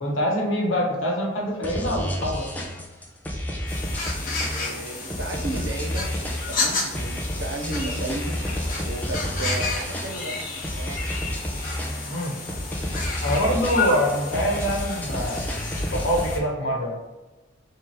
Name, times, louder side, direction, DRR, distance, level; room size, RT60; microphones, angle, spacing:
voice 1, 0.0-2.5 12.1-12.4 13.2-15.4 15.9-17.0, equal, 80° left, -1 dB, 1.0 m, -24 dB
sound 1, 1.6-16.4, equal, 10° left, 0.5 m, -30 dB
sound 2, 3.7-16.4, left 3 dB, 45° left, 0.8 m, -32 dB
voice 2, 4.5-6.1 6.5-8.4 8.8-11.0, right 2 dB, 70° right, 1 dB, 0.7 m, -34 dB
3.4 x 3.0 x 4.5 m, 1.2 s
head